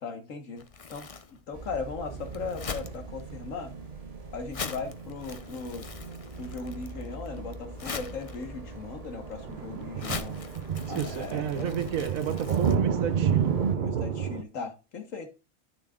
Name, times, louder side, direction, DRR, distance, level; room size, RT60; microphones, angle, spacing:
voice 1, 0.0-3.7 4.3-5.9 6.4-10.4 10.9-11.7 13.7-15.3, left 4 dB, 75° left, 1.8 m, -38 dB
Crumpling crinkling, 0.6-12.7, left 5 dB, 35° left, 0.6 m, -42 dB
sound 1, 1.5-13.8, right 3 dB, 30° right, 1.4 m, -43 dB
sound 2, 2.0-3.3 9.1-14.4, right 7 dB, 50° right, 0.6 m, -29 dB
voice 2, 10.9-13.6, right 8 dB, 90° right, 1.4 m, -32 dB
10.5 x 6.8 x 2.4 m
omnidirectional pair, 1.4 m